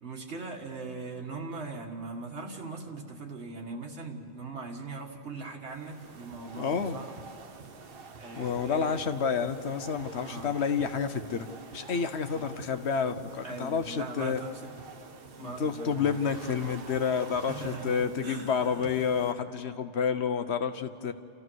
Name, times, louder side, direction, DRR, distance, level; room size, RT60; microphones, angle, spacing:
voice 1, 0.0-7.1 8.2-9.0 10.2-10.5 12.3-12.5 13.4-14.8 15.4-16.3 17.5-19.1, right 3 dB, 75° right, 2 dB, 2.1 m, -40 dB
sound 1, 5.6-19.3, right 4 dB, 55° right, 1.2 m, -47 dB
voice 2, 6.6-7.0 8.4-11.5 11.7-14.4 15.4-21.1, left 6 dB, 70° left, 9 dB, 1.2 m, -29 dB
30.0 x 14.5 x 6.3 m, 2.8 s
omnidirectional pair, 1.2 m